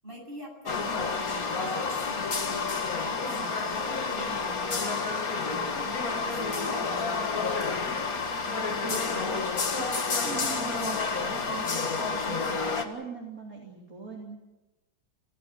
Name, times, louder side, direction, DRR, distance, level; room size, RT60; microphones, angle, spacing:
voice 1, 0.0-2.7 3.0-4.8 5.4-7.5, equal, 25° right, 0 dB, 8.4 m, -45 dB
sound 1, 0.7-12.8, left 4 dB, 50° left, 2.3 m, -29 dB
voice 2, 8.8-14.4, right 4 dB, 45° right, -2 dB, 3.7 m, -41 dB
27.5 x 17.0 x 8.3 m, 1.0 s
omnidirectional pair, 2.1 m